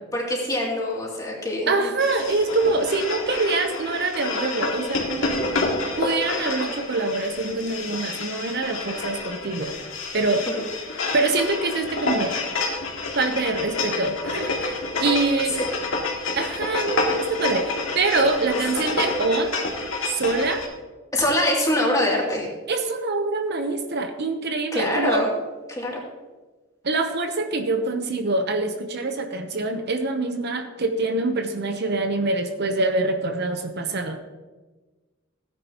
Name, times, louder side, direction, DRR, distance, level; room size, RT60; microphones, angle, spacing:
voice 1, 0.1-1.9 10.5-10.6 15.6-15.7 18.9-19.0 21.1-22.5 24.7-25.3 25.7-26.0, left 1 dB, 20° left, -3 dB, 2.8 m, -24 dB
voice 2, 1.7-5.4 6.0-9.7 10.1-10.4 11.1-12.4 13.1-15.6 16.4-19.5 20.1-20.7 22.7-25.2 26.8-34.2, right 3 dB, 55° right, 6 dB, 0.9 m, -25 dB
sound 1, 2.0-20.7, left 3 dB, 85° left, 2.2 m, -28 dB
16.5 x 9.8 x 2.9 m, 1.3 s
head